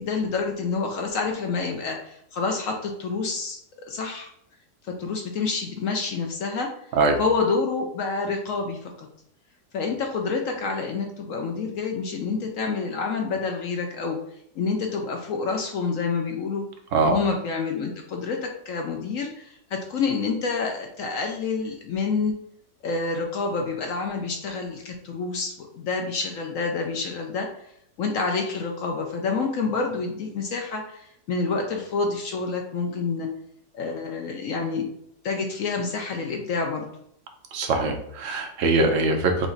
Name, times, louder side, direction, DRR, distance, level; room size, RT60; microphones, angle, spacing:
voice 1, 0.0-3.6 3.9-4.3 4.8-6.7 7.2-9.1 9.7-14.2 14.6-16.7 17.1-22.3 22.8-27.5 28.0-33.3 33.7-34.9 35.2-36.9, left 4 dB, 65° left, 2 dB, 0.9 m, -28 dB
voice 2, 37.5-39.5, right 3 dB, 60° right, 4 dB, 0.9 m, -22 dB
5.0 x 2.5 x 3.8 m, 0.71 s
omnidirectional pair, 1.7 m